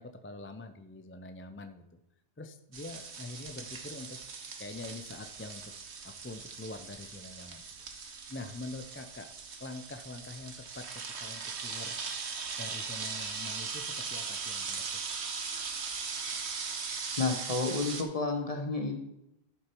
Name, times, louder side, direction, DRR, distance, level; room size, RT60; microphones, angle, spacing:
voice 1, 0.0-1.8 2.4-4.2 4.6-5.6 6.0-7.7 8.3-9.3 9.6-12.0 12.6-15.0, left 2 dB, 15° left, 7 dB, 0.4 m, -44 dB
sound 1, 2.7-18.0, right 5 dB, 90° right, 1.4 m, -39 dB
voice 2, 17.2-19.0, left 3 dB, 35° left, 3 dB, 1.0 m, -31 dB
11.5 x 6.5 x 4.6 m, 0.84 s
omnidirectional pair, 1.1 m